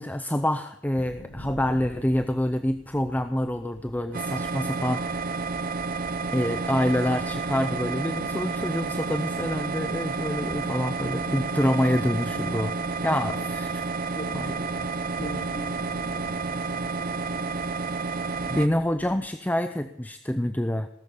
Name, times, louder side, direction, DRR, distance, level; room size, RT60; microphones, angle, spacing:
voice 1, 0.0-5.3 6.3-12.7 13.0-13.7 14.3-14.5 18.5-20.9, left 1 dB, 10° left, 7 dB, 0.6 m, -27 dB
sound 1, 0.9-19.2, equal, 60° left, 6.3 m, -46 dB
sound 2, 4.1-18.7, right 4 dB, 50° right, 0.7 m, -30 dB
voice 2, 13.3-13.8 14.1-14.8 15.1-17.8 18.3-18.5, equal, 30° left, 3 dB, 2.7 m, -44 dB
18.5 x 7.1 x 9.9 m, 0.75 s
head